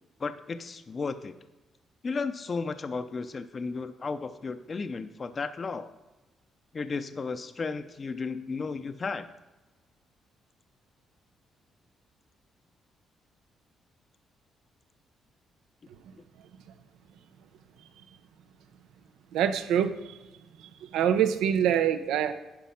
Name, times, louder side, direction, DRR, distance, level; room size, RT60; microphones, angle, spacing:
voice 1, 0.2-1.3 2.0-5.9 6.7-9.3, left 4 dB, 40° left, 10 dB, 0.5 m, -34 dB
voice 2, 19.3-20.2 20.6-22.3, right 9 dB, 90° right, 10 dB, 0.7 m, -25 dB
10.5 x 5.0 x 5.7 m, 1.1 s
cardioid pair, 90°, 0 cm